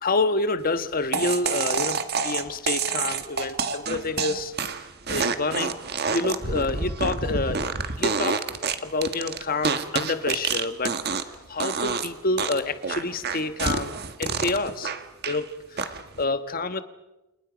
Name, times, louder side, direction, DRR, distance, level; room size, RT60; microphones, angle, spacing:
voice 1, 0.0-4.5 5.1-5.8 6.1-7.6 8.0-8.4 8.8-11.0 11.5-13.9 14.2-14.9 15.3-15.9 16.2-16.8, left 3 dB, 40° left, 10 dB, 1.3 m, -28 dB
sound 1, 1.1-11.4 11.6-12.1 12.4-15.4 15.8-16.2, right 5 dB, 45° right, 1.5 m, -28 dB
30.0 x 28.0 x 5.2 m, 1.0 s
head